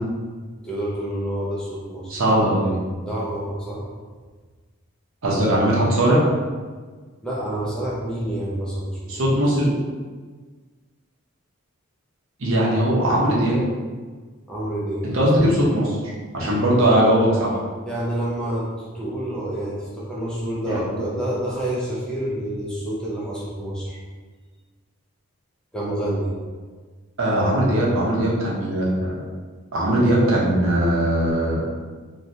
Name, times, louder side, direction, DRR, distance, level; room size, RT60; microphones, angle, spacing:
voice 1, 0.6-2.2 3.1-3.9 7.2-9.3 14.5-15.1 17.9-24.0 25.7-26.4, right 1 dB, 5° left, -7 dB, 0.4 m, -28 dB
voice 2, 2.1-2.8 5.2-6.2 9.1-9.7 12.4-13.6 15.0-17.5 20.6-20.8 27.2-29.2 29.7-31.6, right 1 dB, 70° right, -5 dB, 0.7 m, -20 dB
3.1 x 2.2 x 2.7 m, 1.5 s
head